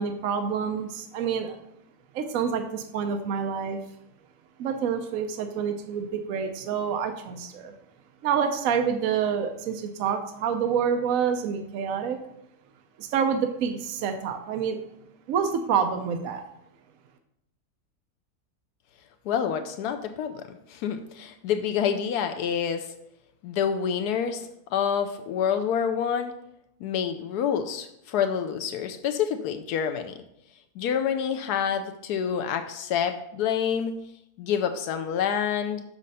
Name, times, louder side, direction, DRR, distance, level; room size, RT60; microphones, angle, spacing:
voice 1, 0.0-1.6 2.1-3.8 4.6-7.7 8.2-12.2 13.0-14.8 15.3-16.4, right 7 dB, 65° right, 6 dB, 1.0 m, -27 dB
voice 2, 19.3-22.9 23.4-26.4 26.8-30.2 30.8-34.0 34.4-35.8, left 8 dB, 80° left, 7 dB, 1.1 m, -27 dB
6.5 x 6.3 x 4.1 m, 0.80 s
omnidirectional pair, 1.7 m